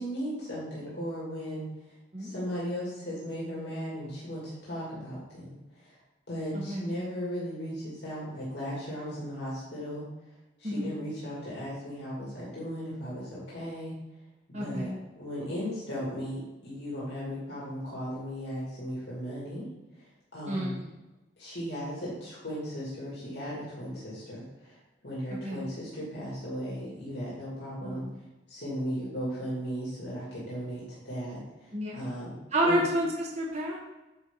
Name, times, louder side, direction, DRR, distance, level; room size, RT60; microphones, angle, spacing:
voice 1, 0.0-1.6 2.2-5.6 6.3-10.0 10.6-13.9 14.5-19.6 20.3-20.8 21.4-24.7 25.0-28.0 28.5-31.4 32.0-32.3 32.6-32.8, equal, 65° left, -8 dB, 2.6 m, -36 dB
voice 2, 6.5-6.9 10.6-10.9 14.5-15.0 20.5-20.9 25.3-25.7 27.8-28.2 31.7-32.1 32.5-33.8, right 1 dB, 40° right, -2 dB, 1.1 m, -30 dB
9.8 x 4.6 x 4.0 m, 1.0 s
head